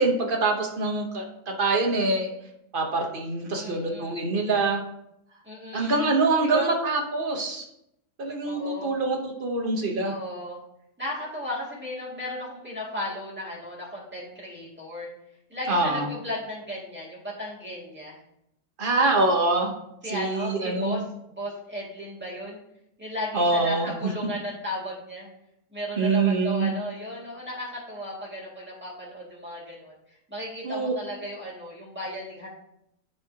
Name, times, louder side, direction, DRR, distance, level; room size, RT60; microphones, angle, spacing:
voice 1, 0.0-2.3 2.7-4.8 5.7-7.6 8.2-10.1 15.7-16.1 18.8-19.7 20.1-21.1 23.3-24.1 26.0-26.7 30.6-30.9, right 3 dB, 40° right, 2 dB, 0.9 m, -25 dB
voice 2, 3.5-4.2 5.4-6.1 6.4-6.7 8.4-8.9 10.0-10.6 11.0-15.1 15.5-18.2 20.0-22.6 23.0-25.3 25.7-32.5, equal, 5° right, -6 dB, 2.1 m, -35 dB
10.0 x 4.2 x 2.8 m, 0.79 s
omnidirectional pair, 1.8 m